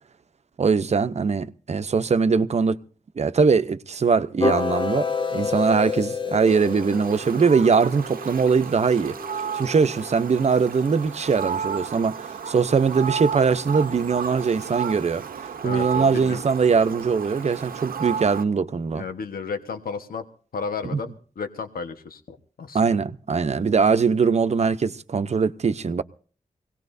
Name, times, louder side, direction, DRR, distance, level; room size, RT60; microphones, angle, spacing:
voice 1, 0.6-2.8 3.2-9.2 9.5-19.0 20.9-21.0 22.7-26.0, right 5 dB, 50° right, 0.8 m, -21 dB
sound 1, 4.4-10.5, left 5 dB, 35° left, 0.9 m, -30 dB
Fowl, 6.5-18.4, right 7 dB, 85° right, 0.9 m, -33 dB
voice 2, 15.6-16.4 18.9-20.2 20.5-23.0, left 5 dB, 90° left, 1.3 m, -33 dB
24.5 x 18.0 x 2.7 m
wide cardioid pair, 90°, 15 cm